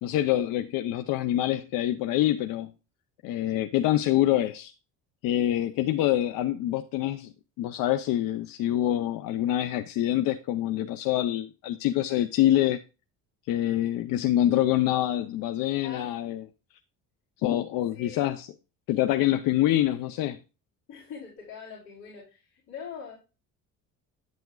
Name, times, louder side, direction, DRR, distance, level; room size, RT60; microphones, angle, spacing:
voice 1, 0.0-2.7 3.2-4.7 5.2-12.8 13.5-16.4 17.4-18.5 18.9-20.4, left 13 dB, 70° left, 0.6 m, -26 dB
voice 2, 15.8-16.2 17.9-18.3 20.9-23.2, left 6 dB, 50° left, 3.5 m, -43 dB
9.1 x 8.4 x 2.3 m
cardioid pair, 175°, 35 cm